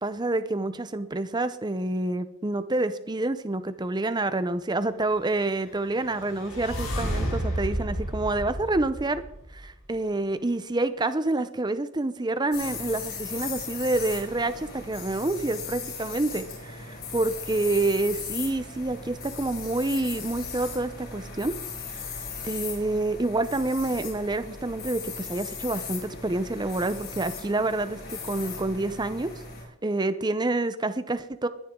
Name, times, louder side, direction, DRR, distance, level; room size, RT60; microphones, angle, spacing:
voice 1, 0.0-9.2 9.5-21.5 21.9-29.3 29.8-31.5, right 2 dB, 20° right, 12 dB, 0.6 m, -28 dB
sound 1, 5.7-9.8, equal, 85° left, 7.3 m, -32 dB
sound 2, 12.5-29.6, left 5 dB, 45° left, 7.1 m, -38 dB
21.5 x 10.0 x 3.7 m, 0.76 s
head